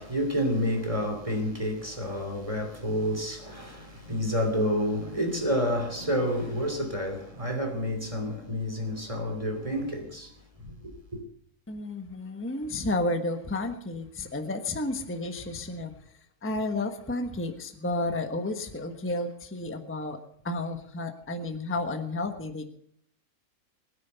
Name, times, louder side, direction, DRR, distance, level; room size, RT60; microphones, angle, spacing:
voice 1, 0.0-10.3 10.6-11.2, equal, 20° right, 3.0 m, -29 dB
voice 2, 11.7-15.9 16.4-22.7, left 2 dB, 10° left, 1.1 m, -32 dB
21.0 x 9.7 x 6.9 m
omnidirectional pair, 1.6 m